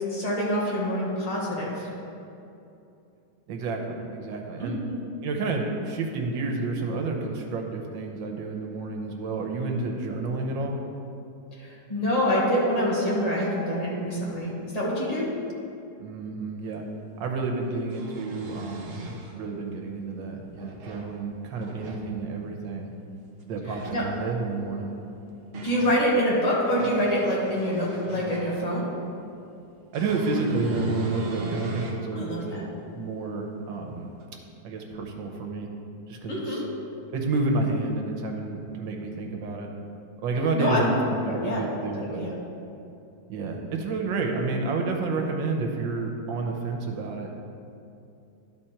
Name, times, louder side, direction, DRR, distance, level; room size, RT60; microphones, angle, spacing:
voice 1, 0.1-1.9 4.6-5.0 11.6-15.3 23.7-24.0 25.6-28.8 32.1-32.6 36.3-36.6 40.6-40.9 41.3-41.6 41.9-42.3, equal, 20° left, -5 dB, 1.4 m, -26 dB
voice 2, 3.5-4.8 5.2-10.7 16.0-16.8 17.2-19.0 19.3-22.9 23.5-24.9 29.9-32.6 32.9-34.1 34.6-35.7 36.1-36.6 37.1-39.7 40.2-42.2 43.3-47.3, right 3 dB, 90° right, 2 dB, 1.6 m, -30 dB
sound 1, 16.7-16.8 17.7-19.3 20.4-21.1 21.6-22.0 23.6-24.1 25.0-26.0 26.5-28.7 29.9-32.0 32.6-32.7 34.2-34.3, right 1 dB, 60° right, 0.6 m, -37 dB
11.5 x 4.1 x 4.4 m, 2.7 s
omnidirectional pair, 2.0 m